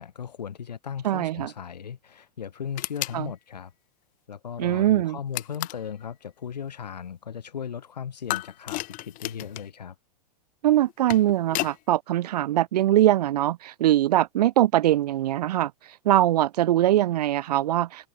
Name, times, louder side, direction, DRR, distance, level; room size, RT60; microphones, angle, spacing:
voice 1, 0.0-3.7 4.3-9.9, left 8 dB, 85° left, 2.7 m, -37 dB
voice 2, 1.0-1.5 3.1-3.3 4.6-5.2 10.6-15.7 16.0-18.1, right 13 dB, 75° right, 0.4 m, -22 dB
sound 1, 2.8-3.2 5.3-5.9 8.3-9.7 10.8-11.8, left 21 dB, 40° left, 2.3 m, -32 dB
hypercardioid pair, 115°, 21 cm